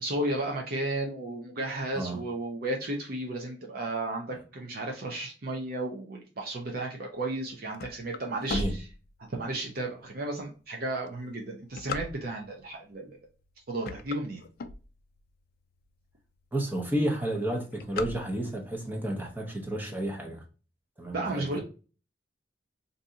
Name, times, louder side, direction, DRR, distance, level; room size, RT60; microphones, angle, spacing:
voice 1, 0.0-8.9 9.3-13.2 13.7-14.4 21.1-21.6, right 2 dB, 55° right, 0.6 m, -33 dB
sound 1, 7.3-9.6 10.1-10.2 10.9-12.6 13.2-13.5 13.8-15.3 15.8-15.9 16.1-16.2 16.5-16.9 17.1-18.8, left 3 dB, 55° left, 0.3 m, -37 dB
voice 2, 16.5-20.4 21.0-21.5, right 1 dB, 10° right, 0.7 m, -31 dB
2.7 x 2.7 x 3.5 m
head